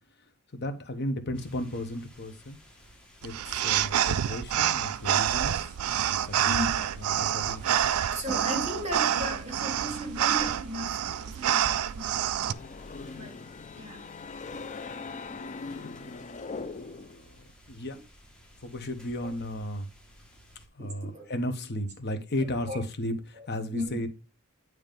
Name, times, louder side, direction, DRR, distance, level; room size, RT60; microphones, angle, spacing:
voice 1, 0.5-2.6 3.2-5.6 6.3-7.9 15.5-16.5 16.8-18.0 18.6-19.9 20.7-24.1, left 1 dB, 50° left, 1.1 m, -35 dB
sound 1, 1.3-20.7, equal, 5° left, 1.4 m, -56 dB
sound 2, 3.2-12.5, right 10 dB, 85° right, 0.4 m, -27 dB
voice 2, 6.5-6.9 8.1-12.6 13.1-13.4 13.8-14.0 20.8-21.3 22.7-22.8 23.4-23.5 23.7-24.0, equal, 35° right, 2.3 m, -36 dB
sound 3, 12.0-17.2, left 4 dB, 35° left, 0.5 m, -41 dB
9.2 x 3.2 x 5.1 m
head